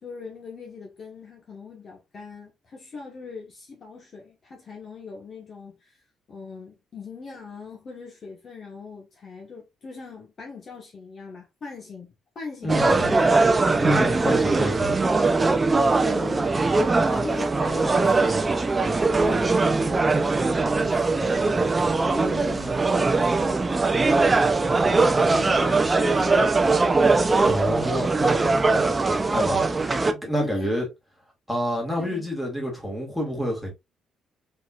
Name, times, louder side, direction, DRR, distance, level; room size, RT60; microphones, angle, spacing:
voice 1, 0.0-6.0 6.3-13.2 14.2-14.4 16.0-19.8 20.1-23.7 24.6-26.5 30.4-30.7 32.0-32.3, left 4 dB, 40° left, 1.4 m, -41 dB
voice 2, 12.6-13.1 13.7-15.0 27.4-29.6 30.1-30.9 31.5-33.7, equal, 5° left, 2.2 m, -28 dB
sound 1, 12.7-30.1, right 3 dB, 20° right, 0.5 m, -21 dB
4.4 x 4.1 x 2.4 m
cardioid pair, 135°, 0 cm